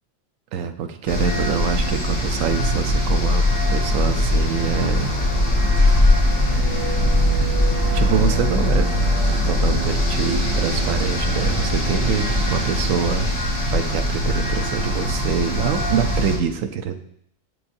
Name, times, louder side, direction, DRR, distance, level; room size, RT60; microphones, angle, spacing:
voice 1, 0.5-5.1 7.9-8.9 9.5-13.3 13.7-17.0, right 7 dB, 85° right, 9 dB, 1.0 m, -25 dB
sound 1, 1.1-16.4, left 1 dB, 25° left, 1.5 m, -21 dB
sound 2, 3.4-13.9, right 3 dB, 40° right, 0.5 m, -32 dB
7.9 x 7.0 x 2.6 m, 0.68 s
omnidirectional pair, 1.3 m